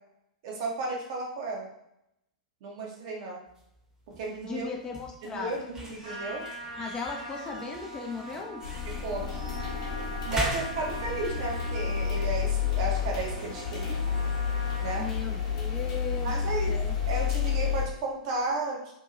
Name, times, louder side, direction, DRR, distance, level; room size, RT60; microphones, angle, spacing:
voice 1, 0.4-1.7 2.6-3.4 4.2-4.7 5.2-6.4 9.0-9.3 10.3-14.0 14.8-15.0 16.2-16.7 17.1-18.9, right 2 dB, 50° right, -1 dB, 0.8 m, -33 dB
sound 1, 3.5-16.2, right 1 dB, 15° right, 0.8 m, -43 dB
voice 2, 4.4-5.6 6.8-8.6 14.9-17.0, left 4 dB, 20° left, 1 dB, 0.4 m, -37 dB
Trumpet, 6.0-15.1, equal, 75° right, 1.4 m, -42 dB
sound 2, 8.6-17.9, left 7 dB, 60° left, 0.8 m, -30 dB
2.8 x 2.7 x 2.5 m, 0.79 s
figure-of-eight pair, 100°, 4 cm